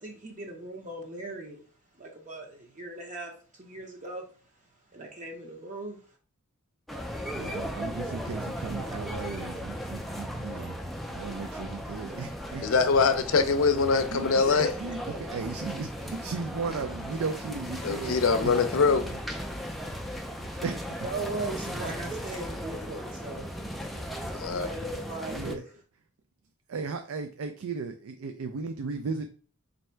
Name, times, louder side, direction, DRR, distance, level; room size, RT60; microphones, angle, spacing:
voice 1, 0.0-1.6 2.0-4.3 4.9-6.0 14.5-15.2 21.0-23.5 24.5-25.6, right 2 dB, 35° right, 0.7 m, -38 dB
sound 1, 6.9-25.5, equal, ahead, 0.4 m, -37 dB
voice 2, 7.3-10.8 11.1-12.9 14.1-18.6 18.9-19.2 20.1-20.3 20.6-21.1 21.7-22.1 25.2-25.6 26.7-29.3, right 4 dB, 70° right, 0.4 m, -36 dB
voice 3, 12.6-14.7 17.8-19.1 24.4-24.7, left 4 dB, 65° left, 0.5 m, -23 dB
3.2 x 2.6 x 4.4 m
head